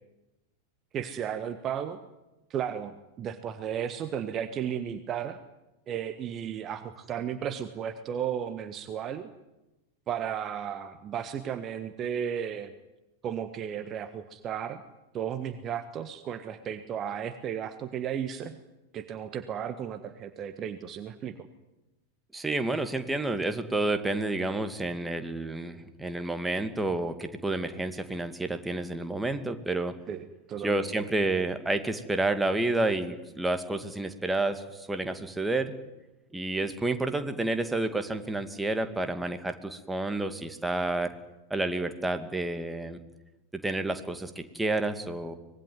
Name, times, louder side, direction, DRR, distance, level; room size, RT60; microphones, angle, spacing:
voice 1, 0.9-2.0 2.5-5.4 5.9-9.3 10.1-12.7 13.2-14.8 15.1-18.6 18.9-21.5 30.1-30.9, right 8 dB, 30° right, 10 dB, 1.5 m, -34 dB
voice 2, 22.3-29.9 30.6-35.7 36.3-41.2 41.5-43.0 43.6-45.3, right 2 dB, 5° right, 8 dB, 2.3 m, -30 dB
25.0 x 20.5 x 9.5 m, 1.0 s
figure-of-eight pair, 90°, 0 cm